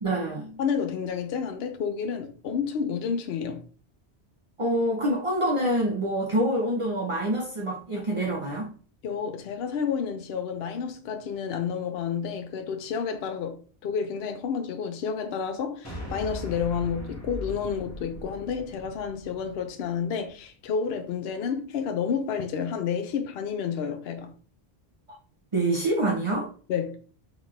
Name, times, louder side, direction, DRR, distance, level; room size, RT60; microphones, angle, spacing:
voice 1, 0.0-0.6 4.6-8.7 25.5-26.5, right 1 dB, 35° right, 0.7 m, -26 dB
voice 2, 0.6-3.7 9.0-24.3 26.7-27.0, left 6 dB, 70° left, 0.8 m, -30 dB
sound 1, 15.8-20.3, left 2 dB, 15° left, 1.2 m, -40 dB
3.9 x 3.5 x 3.1 m
omnidirectional pair, 1.1 m